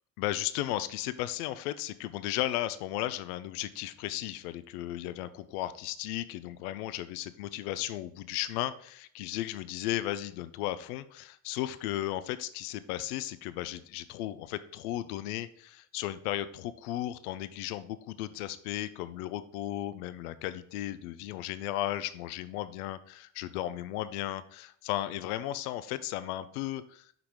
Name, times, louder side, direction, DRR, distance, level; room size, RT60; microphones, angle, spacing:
voice 1, 0.2-27.1, left 14 dB, 65° left, 14 dB, 0.5 m, -35 dB
5.6 x 3.9 x 4.8 m, 0.62 s
figure-of-eight pair, 45°, 48 cm